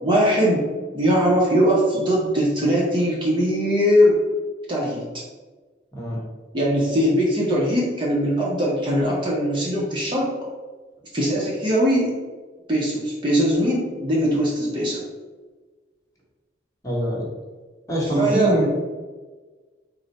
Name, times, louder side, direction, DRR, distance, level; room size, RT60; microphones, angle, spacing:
voice 1, 0.0-0.7 0.9-4.1 4.7-5.0 6.5-10.3 11.1-12.1 12.7-15.0 18.2-18.5, equal, 25° right, -4 dB, 0.6 m, -20 dB
voice 2, 16.8-17.3 17.9-18.7, right 1 dB, 20° left, -6 dB, 0.9 m, -23 dB
3.8 x 2.1 x 4.0 m, 1.3 s
head